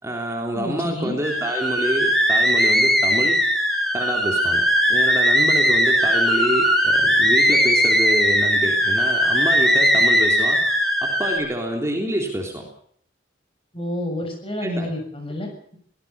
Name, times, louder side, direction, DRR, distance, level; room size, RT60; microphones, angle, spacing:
voice 1, 0.0-3.4 3.9-10.6 11.0-12.7 14.6-14.9, right 1 dB, 15° right, 1 dB, 3.5 m, -27 dB
voice 2, 0.5-1.2 13.7-15.8, left 1 dB, 30° left, 4 dB, 7.1 m, -29 dB
sound 1, 1.2-11.4, equal, ahead, 5.9 m, -19 dB
23.5 x 18.5 x 7.0 m, 0.63 s
head